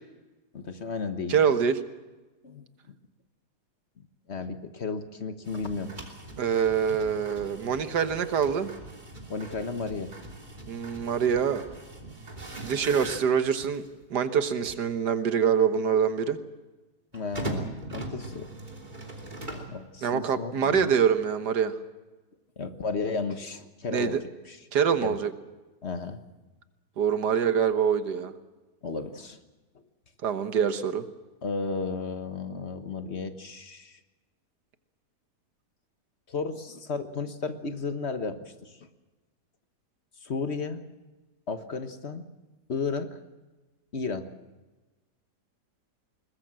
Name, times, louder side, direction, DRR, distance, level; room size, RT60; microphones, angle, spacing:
voice 1, 0.5-1.4 2.4-2.6 4.3-5.9 9.3-10.1 12.3-12.4 17.1-18.5 19.5-20.9 22.6-24.2 24.5-24.6 25.0-25.2 25.8-26.2 28.8-29.4 31.4-34.0 36.3-38.9 40.2-40.8 41.5-42.2 42.7-43.2 43.9-44.4, left 4 dB, 45° left, 9 dB, 1.4 m, -33 dB
voice 2, 1.3-1.8 6.4-8.7 10.7-11.7 12.6-13.9 14.1-16.4 20.0-21.7 23.9-24.2 24.7-25.3 27.0-28.3 30.2-31.1, right 7 dB, 90° right, 10 dB, 1.9 m, -25 dB
sound 1, 5.4-13.9 14.6-14.7 17.1-19.8, right 2 dB, 25° right, 3.2 m, -40 dB
22.0 x 20.0 x 7.6 m, 1.2 s
omnidirectional pair, 1.7 m